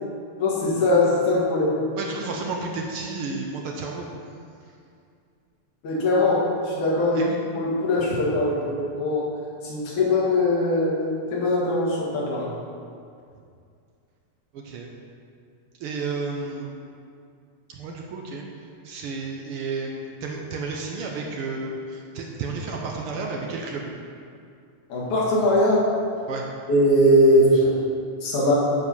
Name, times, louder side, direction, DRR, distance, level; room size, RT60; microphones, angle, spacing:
voice 1, 0.4-1.8 5.8-7.2 7.6-9.2 9.6-11.0 11.3-12.5 24.9-25.8 26.7-27.8 28.2-28.5, left 1 dB, 90° left, -6 dB, 3.4 m, -21 dB
voice 2, 2.0-4.1 7.1-7.4 8.1-8.3 14.5-14.9 15.8-16.7 17.7-18.4 18.8-23.9 26.3-26.4, right 4 dB, 70° right, 0 dB, 1.4 m, -32 dB
9.5 x 4.6 x 7.1 m, 2.4 s
omnidirectional pair, 3.3 m